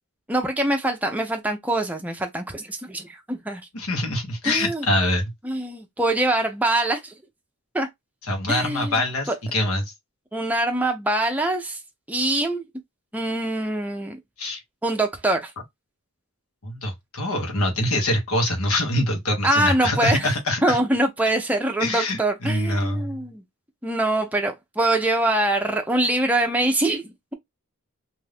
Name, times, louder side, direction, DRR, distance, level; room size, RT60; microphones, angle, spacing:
voice 1, 0.3-3.6 4.4-4.9 5.4-7.1 7.7-7.9 8.5-8.9 9.3-9.4 10.3-11.8 12.1-12.6 13.1-14.2 14.8-15.5 19.4-20.3 20.6-23.4 23.8-27.3, right 1 dB, 5° right, 0.6 m, -24 dB
voice 2, 3.7-5.3 8.3-9.9 14.4-14.6 16.6-20.8 21.8-23.2, left 1 dB, 80° left, 1.1 m, -24 dB
2.6 x 2.6 x 3.3 m
head